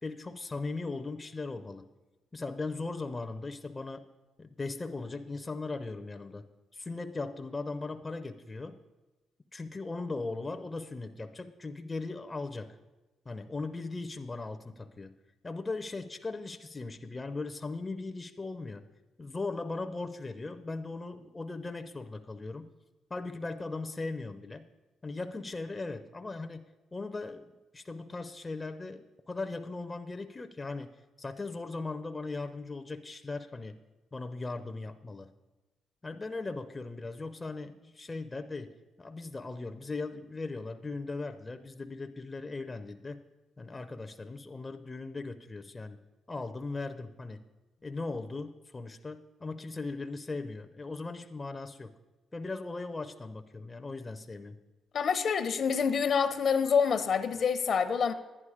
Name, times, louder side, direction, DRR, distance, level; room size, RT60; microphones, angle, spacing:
voice 1, 0.0-1.9 2.3-4.1 4.4-6.5 6.7-8.8 9.5-12.8 13.3-15.1 15.4-18.9 19.2-22.7 23.1-24.7 25.0-33.8 34.1-35.3 36.0-43.2 43.6-46.0 46.3-47.4 47.8-51.9 52.3-54.6, left 3 dB, 20° left, 0.5 m, -38 dB
voice 2, 54.9-58.1, left 6 dB, 55° left, 0.7 m, -27 dB
10.5 x 9.9 x 4.8 m
cardioid pair, 90°, 0 cm